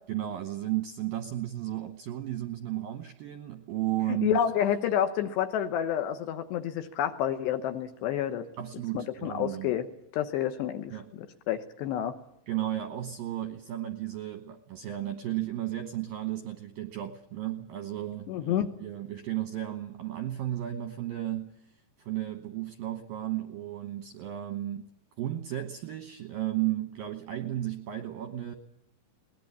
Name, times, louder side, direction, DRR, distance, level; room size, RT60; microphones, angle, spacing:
voice 1, 0.1-4.4 8.6-9.8 10.9-11.1 12.5-21.7 22.0-24.9 25.2-28.5, right 13 dB, 75° right, 7 dB, 2.1 m, -34 dB
voice 2, 4.1-8.5 8.9-9.9 10.1-10.9 11.5-12.2 18.3-18.7, left 10 dB, 75° left, 8 dB, 2.9 m, -29 dB
21.5 x 19.5 x 8.5 m, 0.79 s
omnidirectional pair, 5.7 m